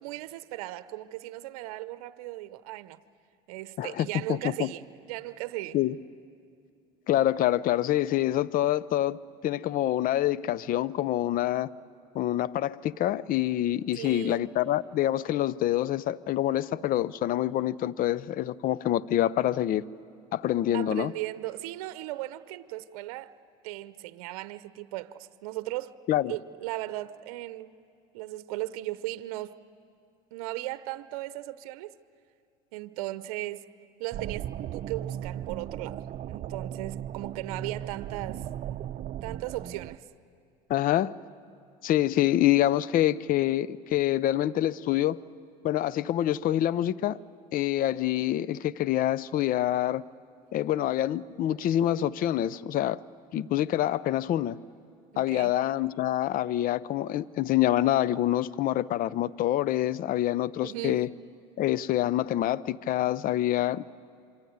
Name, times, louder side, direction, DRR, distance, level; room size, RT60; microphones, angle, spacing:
voice 1, 0.0-3.0 3.5-5.8 13.9-14.4 20.7-23.3 23.6-26.0 26.3-27.8 28.1-29.6 30.3-31.9 32.7-33.6 34.0-36.0 36.3-38.4 39.2-40.0 55.1-55.5 60.6-61.0, right 16 dB, 85° right, 0.7 m, -37 dB
voice 2, 3.8-4.7 5.7-6.0 7.1-11.7 12.1-19.8 20.3-21.1 26.1-26.3 40.7-41.2 41.8-45.2 45.6-47.2 47.5-50.0 50.5-53.0 53.3-54.6 55.2-61.1 61.6-63.9, left 13 dB, 50° left, 0.6 m, -26 dB
sound 1, 34.1-40.0, right 10 dB, 45° right, 0.7 m, -37 dB
27.0 x 23.5 x 9.4 m
supercardioid pair, 95°, 18 cm